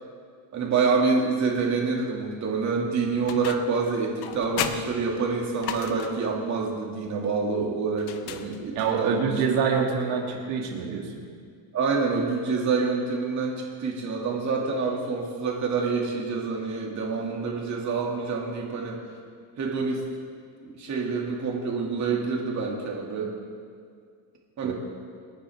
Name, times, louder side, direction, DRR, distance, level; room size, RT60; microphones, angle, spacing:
voice 1, 0.5-9.3 11.7-19.0 19.6-20.0 20.6-23.3 24.6-24.7, right 4 dB, 35° right, -1 dB, 2.5 m, -27 dB
sound 1, 3.3-3.8 4.2-6.3 8.0-8.9, left 9 dB, 50° left, 0.9 m, -34 dB
voice 2, 8.8-11.2 24.6-24.7, right 6 dB, 80° right, -1 dB, 2.7 m, -26 dB
27.5 x 9.8 x 3.6 m, 2.1 s
cardioid pair, 150°, 48 cm